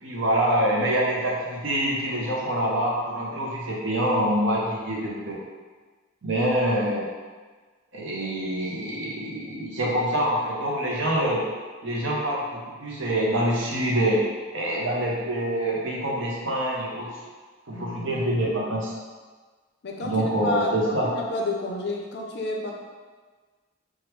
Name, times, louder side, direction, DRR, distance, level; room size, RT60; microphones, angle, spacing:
voice 1, 0.0-5.4 6.2-7.1 7.9-11.4 11.8-14.2 14.5-17.1 17.7-18.9 20.0-21.1, right 1 dB, 65° right, -4 dB, 0.7 m, -25 dB
voice 2, 17.7-18.3 19.8-22.7, left 2 dB, 55° left, 1 dB, 0.4 m, -31 dB
3.0 x 2.3 x 3.2 m, 1.4 s
head